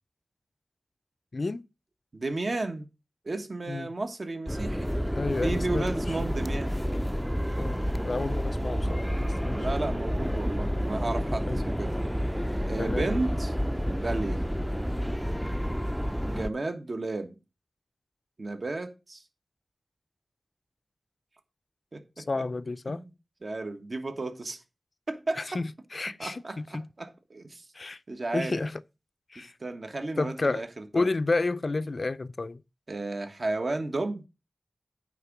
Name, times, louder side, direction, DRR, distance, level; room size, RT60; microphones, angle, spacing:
voice 1, 1.3-1.6 3.7-3.9 5.1-6.2 7.6-9.7 11.5-11.6 12.8-13.1 22.2-23.0 25.4-26.9 27.7-28.0 28.3-28.8 29.3-29.5 30.2-30.6 30.9-32.6, left 3 dB, 55° left, 0.4 m, -31 dB
voice 2, 2.1-2.9 3.2-4.9 5.4-6.8 9.5-11.9 12.6-13.5 13.9-14.5 16.2-17.4 18.4-19.2 21.9-22.0 22.9-23.1 23.4-24.6 25.1-25.4 26.2-27.6 28.1-28.6 29.6-31.1 32.9-34.2, right 2 dB, 55° right, 1.2 m, -33 dB
sound 1, 4.5-16.5, equal, 5° right, 0.5 m, -29 dB
9.2 x 3.6 x 6.0 m
wide cardioid pair, 65°, 0 cm